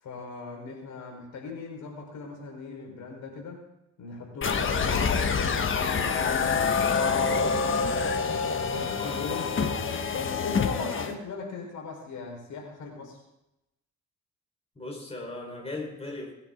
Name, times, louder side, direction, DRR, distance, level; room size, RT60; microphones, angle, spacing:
voice 1, 0.0-3.6 4.0-7.9 8.7-9.5 10.1-13.2, left 4 dB, 75° left, 1 dB, 4.9 m, -38 dB
sound 1, 4.4-11.1, left 5 dB, 40° left, 1.4 m, -26 dB
voice 2, 14.7-16.3, left 2 dB, 20° left, 1 dB, 4.7 m, -37 dB
21.5 x 10.0 x 3.9 m, 0.87 s
cardioid pair, 90°, 30 cm